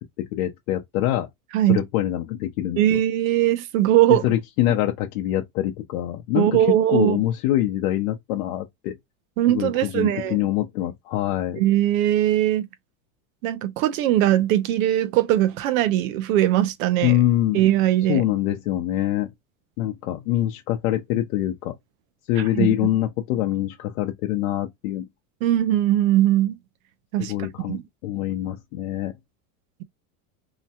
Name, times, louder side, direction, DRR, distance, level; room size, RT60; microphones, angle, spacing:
voice 1, 0.3-1.3 1.7-3.0 4.2-6.5 6.9-8.9 9.5-11.6 17.0-17.6 18.1-19.3 19.8-21.7 22.3-25.0 27.2-29.1, left 13 dB, 65° left, 0.7 m, -24 dB
voice 2, 2.8-4.3 6.3-7.2 9.4-10.4 11.6-12.7 13.4-17.2 17.5-18.2 22.4-22.9 25.4-26.6 27.1-27.8, right 13 dB, 65° right, 0.6 m, -20 dB
2.8 x 2.1 x 2.8 m
supercardioid pair, 175°, 44 cm